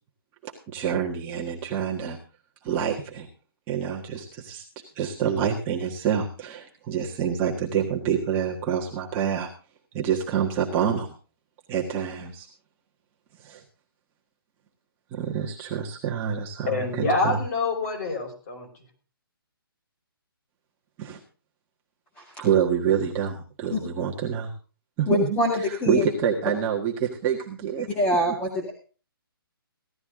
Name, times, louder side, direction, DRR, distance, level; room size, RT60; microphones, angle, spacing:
voice 1, 0.7-2.2 2.6-3.3 3.7-4.6 4.9-9.5 9.9-11.1 11.7-12.5 13.4-13.6 15.1-17.4 21.0-21.2 22.4-24.5 25.0-25.4 25.9-27.9, right 8 dB, 15° right, -3 dB, 1.5 m, -27 dB
voice 2, 16.7-18.7, left 3 dB, 40° left, 0 dB, 5.5 m, -26 dB
voice 3, 25.1-26.0 27.9-28.7, left 1 dB, 10° left, -1 dB, 1.9 m, -24 dB
16.5 x 12.5 x 3.7 m, 0.36 s
hypercardioid pair, 165°, 13 cm